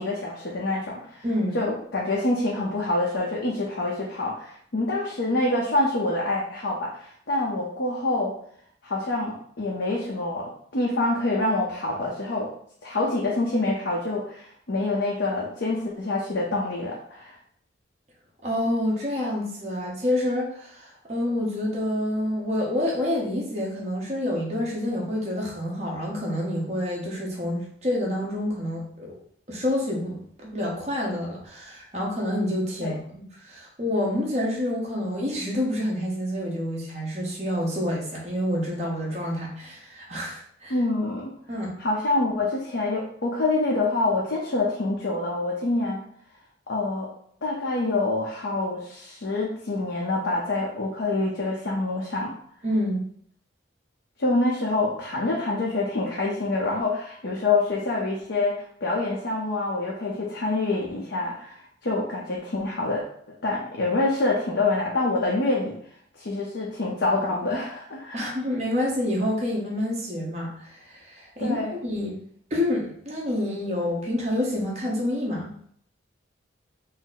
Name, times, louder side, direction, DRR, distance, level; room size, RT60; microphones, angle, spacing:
voice 1, 0.0-1.2 1.5-8.3 8.8-12.5 12.8-17.4 32.8-32.9 40.7-41.3 41.8-46.0 46.7-47.1 47.4-52.3 54.2-61.6 61.8-63.0 63.4-65.7 66.2-68.3 71.4-71.8, left 2 dB, 70° left, -4 dB, 0.7 m, -26 dB
voice 2, 1.2-1.6 18.4-29.2 29.5-40.8 41.5-41.7 52.6-53.0 68.1-72.1 72.5-75.5, left 1 dB, 35° right, -3 dB, 1.0 m, -28 dB
4.0 x 2.0 x 4.0 m, 0.63 s
head